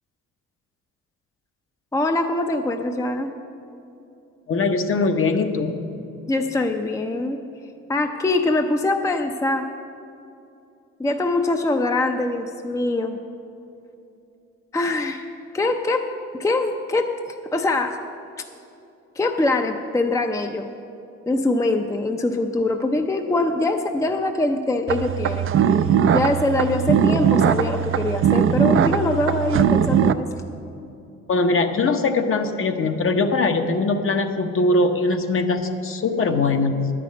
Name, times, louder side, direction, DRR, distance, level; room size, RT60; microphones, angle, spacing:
voice 1, 1.9-3.3 6.3-7.4 7.9-9.7 11.0-13.2 14.7-15.3 15.5-18.0 19.2-20.7 21.3-25.5 25.8-30.3, left 2 dB, 10° left, 5 dB, 0.5 m, -23 dB
voice 2, 4.5-5.8 31.3-36.9, left 3 dB, 45° left, 6 dB, 0.9 m, -21 dB
sound 1, 24.9-30.1, right 8 dB, 45° right, 0.4 m, -19 dB
10.5 x 6.0 x 8.3 m, 2.7 s
cardioid pair, 90°, 30 cm